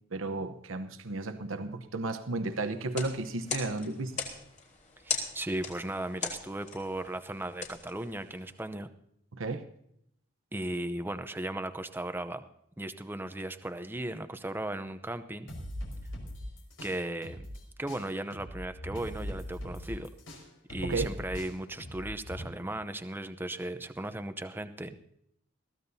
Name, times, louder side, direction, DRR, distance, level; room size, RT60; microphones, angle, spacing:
voice 1, 0.1-4.1 9.3-9.6 20.8-21.1, right 2 dB, 90° right, 9 dB, 1.0 m, -33 dB
sound 1, 2.8-8.6, left 5 dB, 40° left, 3.6 m, -39 dB
voice 2, 5.0-8.9 10.5-12.4 12.8-15.6 16.8-17.5 17.8-20.1 20.7-24.9, right 1 dB, 10° right, 9 dB, 0.7 m, -36 dB
sound 2, 15.5-17.6 17.9-22.4, equal, 85° left, 5.7 m, -40 dB
22.0 x 15.5 x 2.8 m, 0.75 s
head